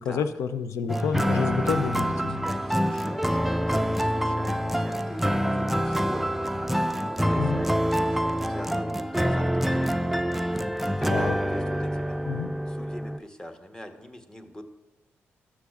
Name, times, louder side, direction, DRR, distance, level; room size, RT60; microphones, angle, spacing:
voice 1, 0.0-2.4 7.4-7.6 11.1-11.4 12.3-12.5, left 6 dB, 85° left, 11 dB, 0.4 m, -29 dB
sound 1, 0.9-13.2, equal, 5° right, 0.4 m, -26 dB
voice 2, 2.0-12.2 12.7-14.6, equal, 15° left, 6 dB, 1.1 m, -42 dB
12.5 x 7.0 x 2.4 m, 1.0 s
supercardioid pair, 55°, 5 cm